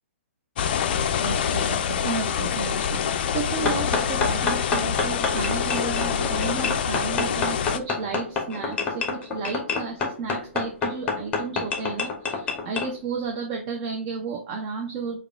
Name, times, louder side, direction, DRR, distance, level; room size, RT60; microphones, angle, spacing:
sound 1, 0.6-7.8, left 8 dB, 45° left, 0.3 m, -26 dB
voice 1, 1.2-15.2, right 5 dB, 35° right, 2 dB, 0.5 m, -33 dB
sound 2, 3.6-12.9, left 4 dB, 15° left, 0.8 m, -27 dB
4.7 x 2.3 x 3.4 m, 0.38 s
figure-of-eight pair, 125°, 7 cm